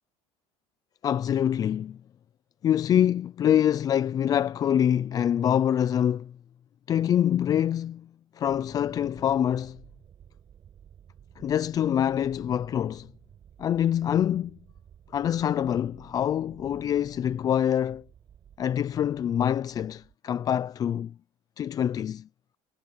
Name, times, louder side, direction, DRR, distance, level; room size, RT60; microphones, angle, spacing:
voice 1, 1.0-2.0 2.6-6.3 6.9-8.1 8.4-9.8 11.4-13.1 13.6-14.6 15.1-18.0 18.6-21.1 21.6-22.3, left 10 dB, 30° left, 0.4 m, -25 dB
sound 1, 8.4-20.2, right 9 dB, 35° right, 6.5 m, -54 dB
cardioid pair, 150°, 13 cm